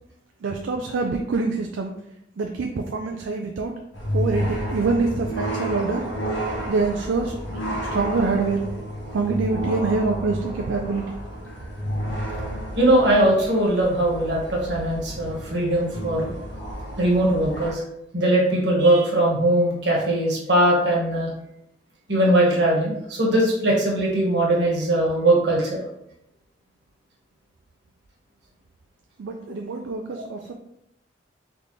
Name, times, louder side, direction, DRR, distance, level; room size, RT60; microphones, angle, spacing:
voice 1, 0.4-1.9 2.4-3.7 4.1-6.0 6.7-7.3 7.9-8.6 9.1-11.1 29.2-30.5, right 4 dB, 80° right, 3 dB, 0.4 m, -25 dB
sound 1, 3.9-17.7, equal, 75° left, 1.1 m, -31 dB
voice 2, 12.8-16.3 17.0-17.8 18.1-21.3 22.1-25.8 30.1-30.2, right 1 dB, 65° right, -3 dB, 1.3 m, -20 dB
4.0 x 3.3 x 3.1 m, 0.79 s
head